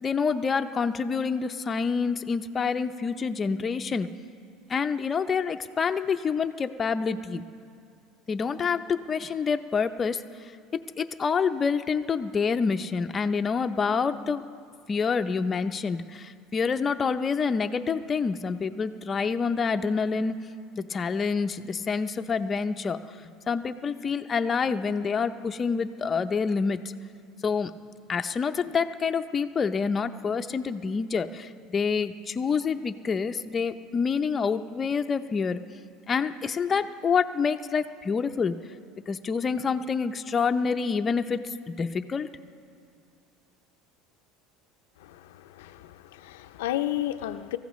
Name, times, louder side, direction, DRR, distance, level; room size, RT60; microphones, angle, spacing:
voice 1, 0.0-4.1 4.7-7.4 8.3-10.2 11.0-14.4 14.9-20.4 20.8-23.0 23.5-26.8 27.4-27.7 28.1-35.6 36.1-38.5 39.1-42.3, left 5 dB, 25° left, 7 dB, 0.6 m, -27 dB
voice 2, 45.0-47.6, left 13 dB, 90° left, 9 dB, 0.5 m, -32 dB
24.0 x 14.5 x 3.1 m, 2.4 s
supercardioid pair, 115°, 0 cm